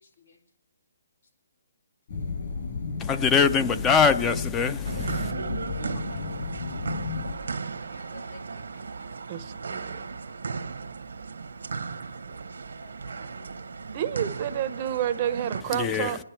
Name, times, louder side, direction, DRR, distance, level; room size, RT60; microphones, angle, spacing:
voice 1, 0.0-0.4 3.4-3.5 5.5-6.5 7.0-7.5 7.8-9.0 9.4-9.5 9.8-10.1 12.8-13.7 14.4-14.5, left 3 dB, 80° left, 2.5 m, -53 dB
sound 1, 2.1-7.3, left 4 dB, 50° left, 5.5 m, -33 dB
voice 2, 3.0-5.3 15.7-16.2, left 6 dB, 15° left, 0.4 m, -23 dB
sound 2, 4.8-15.6, right 4 dB, 85° right, 0.9 m, -35 dB
voice 3, 9.3-10.0 13.9-16.2, right 11 dB, 35° right, 0.6 m, -29 dB
25.5 x 10.0 x 4.5 m
hypercardioid pair, 160°, 0 cm